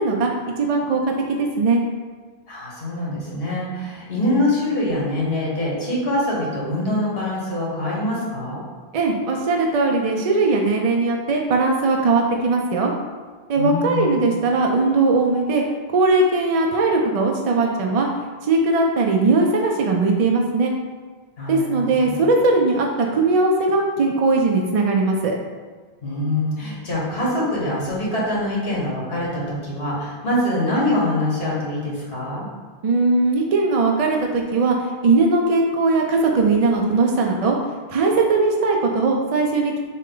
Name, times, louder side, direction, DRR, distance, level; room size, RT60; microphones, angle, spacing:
voice 1, 0.0-1.8 8.9-12.9 13.5-15.6 15.9-18.1 18.4-20.7 21.5-25.3 32.8-37.6 37.9-39.8, right 3 dB, 55° right, 1 dB, 0.4 m, -19 dB
voice 2, 2.5-8.6 13.6-14.1 21.4-22.2 26.0-32.5, left 1 dB, 70° left, -5 dB, 1.5 m, -24 dB
6.2 x 2.2 x 3.8 m, 1.4 s
omnidirectional pair, 1.0 m